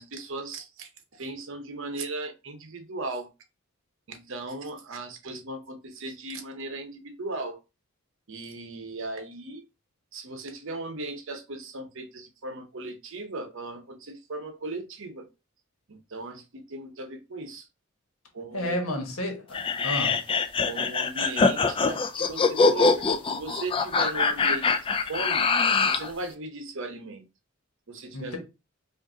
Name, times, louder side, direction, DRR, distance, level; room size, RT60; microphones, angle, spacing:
voice 1, 0.0-3.3 4.1-7.6 8.3-9.6 10.1-15.3 15.9-17.7 18.3-18.8 20.7-25.5 25.8-27.2 27.9-28.4, right 2 dB, 65° right, 0.8 m, -37 dB
voice 2, 18.5-20.2 28.1-28.4, left 1 dB, 80° left, 1.3 m, -31 dB
sound 1, 19.5-26.1, left 4 dB, 25° left, 0.3 m, -23 dB
5.0 x 2.6 x 2.7 m
head